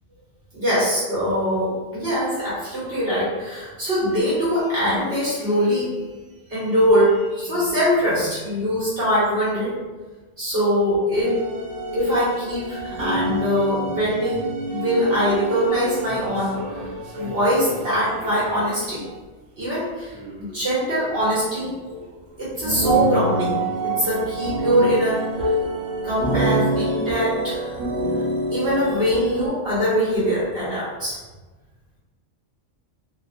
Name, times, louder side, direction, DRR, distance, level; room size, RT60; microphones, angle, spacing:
voice 1, 0.5-5.9 6.5-9.8 10.4-11.3 11.9-16.5 17.2-19.0 19.6-21.7 22.4-23.6 23.8-25.2 26.0-27.7 28.5-31.2, equal, 50° right, -10 dB, 1.0 m, -22 dB
sound 1, 11.1-18.7 20.1-20.7 21.0-21.1 21.8-22.1 22.6-29.5, right 1 dB, 75° right, 0.9 m, -27 dB
2.8 x 2.0 x 2.4 m, 1.2 s
omnidirectional pair, 1.3 m